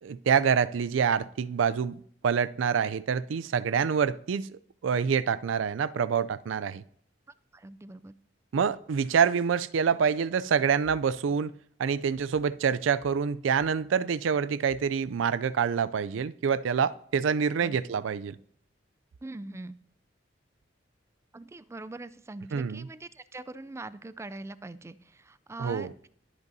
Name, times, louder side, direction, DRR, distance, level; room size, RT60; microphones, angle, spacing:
voice 1, 0.0-4.5 4.8-6.8 8.5-11.5 11.8-18.4 22.5-22.9 25.6-25.9, right 6 dB, 85° right, 0.4 m, -26 dB
voice 2, 7.5-8.1 17.6-17.8 19.2-19.8 21.3-26.1, right 2 dB, 15° right, 0.3 m, -42 dB
21.0 x 8.0 x 2.7 m
head